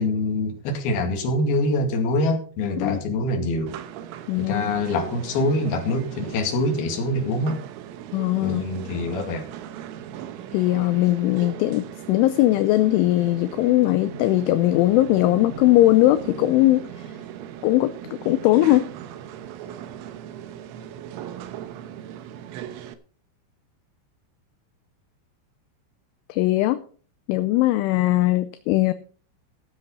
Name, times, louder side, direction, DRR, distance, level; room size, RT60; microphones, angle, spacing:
voice 1, 0.0-3.7 4.4-7.6 8.4-9.4, left 2 dB, 55° left, 3 dB, 3.7 m, -24 dB
sound 1, 3.7-22.9, right 10 dB, 80° right, 3.6 m, -38 dB
voice 2, 4.3-4.7 8.1-8.7 10.5-16.9 17.6-17.9 18.3-18.9 26.3-26.8 27.3-28.9, left 16 dB, 80° left, 11 dB, 3.0 m, -20 dB
15.5 x 7.5 x 5.5 m, 0.42 s
omnidirectional pair, 5.9 m